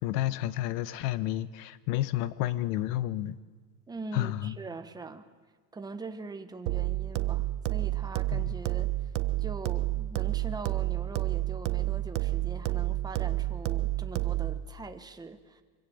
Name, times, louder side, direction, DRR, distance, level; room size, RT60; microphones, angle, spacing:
voice 1, 0.0-3.4 4.1-4.5 8.3-8.4, left 14 dB, 65° left, 16 dB, 1.3 m, -30 dB
voice 2, 3.9-5.3 5.7-8.9 9.4-15.6, right 3 dB, 10° right, 8 dB, 1.1 m, -42 dB
sound 1, 6.7-14.7, right 16 dB, 60° right, 1.3 m, -30 dB
25.0 x 23.5 x 8.6 m, 1.4 s
cardioid pair, 160°, 50 cm